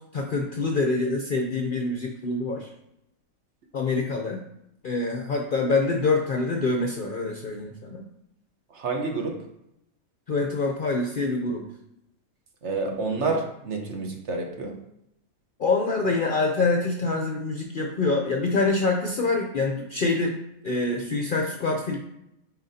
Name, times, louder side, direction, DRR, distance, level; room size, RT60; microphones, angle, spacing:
voice 1, 0.1-2.7 3.7-4.4 4.8-8.0 10.3-11.6 12.9-13.0 15.6-20.4 20.6-22.0, left 3 dB, 50° left, 1 dB, 0.6 m, -25 dB
voice 2, 8.7-9.4 12.6-14.7, right 3 dB, 55° right, 2 dB, 1.2 m, -29 dB
9.2 x 4.3 x 2.8 m, 0.81 s
omnidirectional pair, 1.5 m